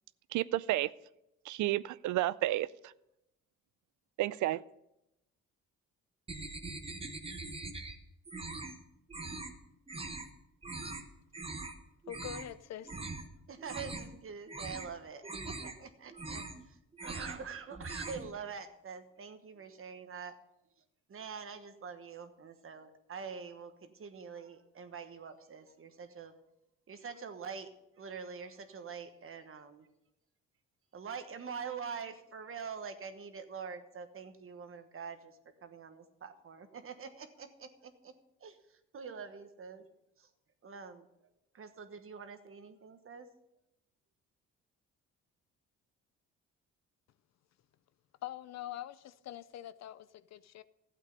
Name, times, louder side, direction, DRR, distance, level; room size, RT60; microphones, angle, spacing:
voice 1, 0.3-0.9 1.5-2.7 4.2-4.6, right 15 dB, 75° right, 0.5 m, -31 dB
sound 1, 6.3-8.0 8.3-8.8 9.1-9.5 9.9-10.3 10.6-11.0 11.3-11.7 12.0-12.5 12.9-13.2 13.6-14.2 14.5-14.9 15.2-15.7 16.1-16.6 16.9-17.4 17.7-18.3, right 3 dB, 20° right, 1.2 m, -42 dB
voice 2, 12.1-13.0 48.2-50.6, left 12 dB, 60° left, 0.5 m, -44 dB
voice 3, 13.5-20.4 21.1-26.3 26.9-27.7 28.0-29.9 30.9-38.1 38.4-39.9 40.2-40.3 40.6-41.1 41.5-43.3, right 6 dB, 45° right, 1.3 m, -45 dB
12.5 x 8.3 x 5.3 m
cardioid pair, 90°, 30 cm